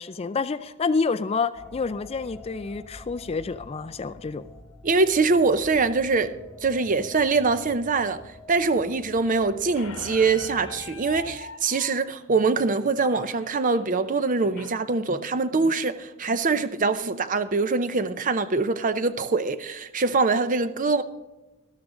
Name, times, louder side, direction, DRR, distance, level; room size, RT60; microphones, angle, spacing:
voice 1, 0.0-4.5, left 4 dB, 25° left, 0.4 m, -28 dB
sound 1, 1.5-11.4, left 1 dB, 5° left, 1.1 m, -47 dB
voice 2, 4.8-6.3 6.6-8.2 8.5-21.0, right 4 dB, 35° right, 0.6 m, -23 dB
Squeak, 9.8-14.8, left 5 dB, 65° left, 1.0 m, -44 dB
13.0 x 12.5 x 3.8 m
head